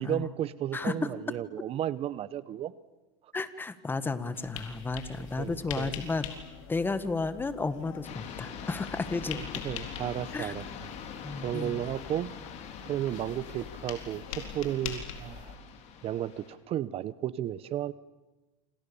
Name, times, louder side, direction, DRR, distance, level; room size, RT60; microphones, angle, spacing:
voice 1, 0.0-2.7 5.4-5.9 9.3-10.6 11.4-12.3 12.9-15.5 16.0-17.9, right 11 dB, 40° right, 17 dB, 0.9 m, -33 dB
voice 2, 3.3-6.4 6.7-9.6 10.3-10.5 11.2-11.8, left 3 dB, 15° left, 12 dB, 1.6 m, -33 dB
sound 1, 4.3-15.6, left 8 dB, 80° left, 4.3 m, -44 dB
sound 2, 8.0-16.6, left 7 dB, 45° left, 4.6 m, -44 dB
28.0 x 27.5 x 7.1 m, 1.1 s
supercardioid pair, 130°, 16 cm